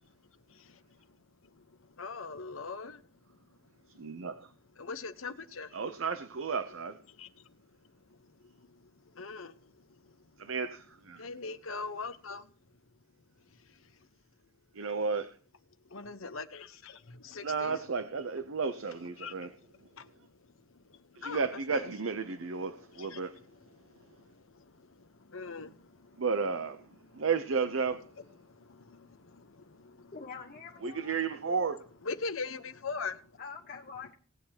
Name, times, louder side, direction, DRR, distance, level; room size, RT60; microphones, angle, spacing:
voice 1, 0.1-4.4 4.7-5.8 7.1-10.5 11.1-13.0 13.3-14.1 15.8-17.8 19.2-21.9 22.3-26.3 27.0-27.3 28.1-30.5 30.8-31.3 32.0-33.4, left 4 dB, 85° left, 1.0 m, -44 dB
voice 2, 4.0-4.5 5.7-7.0 10.4-11.2 14.7-15.3 17.4-19.5 21.2-23.4 26.2-26.8 27.1-28.1 30.8-31.9, right 5 dB, 80° right, 0.7 m, -33 dB
voice 3, 30.1-31.2 33.4-34.1, left 5 dB, 45° left, 1.2 m, -45 dB
18.5 x 8.8 x 2.9 m
head